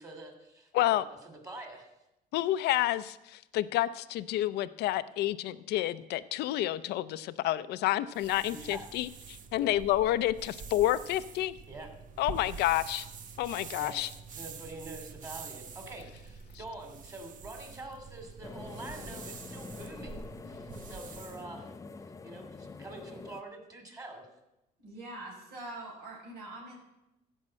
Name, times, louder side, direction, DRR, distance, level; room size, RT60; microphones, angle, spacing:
voice 1, 0.0-1.9 8.5-8.9 11.7-11.9 13.8-14.0 14.3-21.7 22.2-24.3, right 2 dB, 20° right, 4 dB, 2.7 m, -46 dB
voice 2, 0.7-1.0 2.3-11.5 12.2-13.1 13.4-14.1, left 14 dB, 75° left, 15 dB, 0.5 m, -29 dB
sound 1, 8.1-21.4, right 5 dB, 50° right, 1.0 m, -46 dB
sound 2, 18.4-23.4, left 4 dB, 20° left, 0.5 m, -45 dB
voice 3, 24.8-26.8, right 2 dB, 75° right, -2 dB, 5.4 m, -43 dB
15.5 x 5.4 x 7.6 m, 0.91 s
cardioid pair, 110°, 17 cm